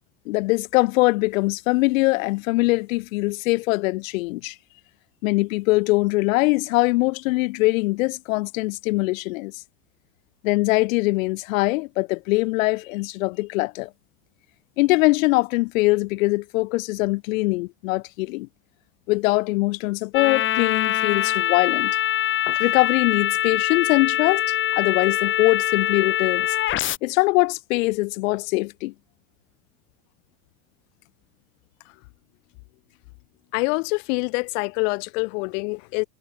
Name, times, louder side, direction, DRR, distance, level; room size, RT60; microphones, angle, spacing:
voice 1, 0.3-4.5 5.2-9.5 10.4-13.9 14.8-18.5 19.1-22.0 22.5-24.4 24.7-26.5 27.0-28.9, left 22 dB, 85° left, 2.6 m, -22 dB
sound 1, 20.1-27.0, left 12 dB, 30° left, 2.2 m, -23 dB
voice 2, 33.5-36.0, left 31 dB, 70° left, 2.7 m, -25 dB
cardioid pair, 165°, 39 cm